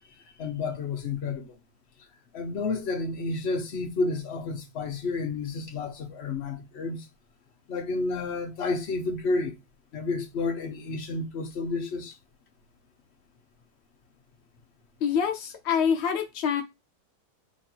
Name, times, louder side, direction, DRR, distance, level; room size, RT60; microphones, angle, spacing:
voice 1, 0.4-1.5 2.3-7.0 7.7-9.5 9.9-12.1, left 3 dB, 55° left, 0.8 m, -30 dB
voice 2, 15.0-16.6, left 7 dB, 85° left, 0.5 m, -26 dB
3.1 x 2.4 x 4.1 m
omnidirectional pair, 1.8 m